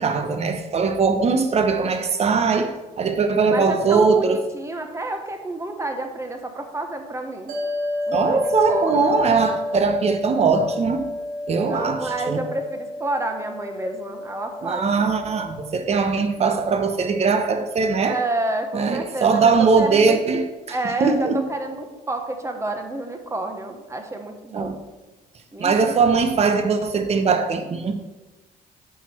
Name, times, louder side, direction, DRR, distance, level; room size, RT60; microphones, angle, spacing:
voice 1, 0.0-4.4 8.1-11.1 11.5-12.4 14.6-18.2 18.7-21.4 24.5-24.7 25.6-27.9, right 5 dB, 40° right, 1.1 m, -20 dB
voice 2, 3.5-7.5 8.1-9.2 11.7-14.9 18.0-20.2 20.7-24.8 25.5-25.9, right 2 dB, 15° right, 1.1 m, -29 dB
sound 1, 7.5-20.0, left 1 dB, 60° right, 3.0 m, -32 dB
9.0 x 6.3 x 4.4 m
cardioid pair, 110°, 17 cm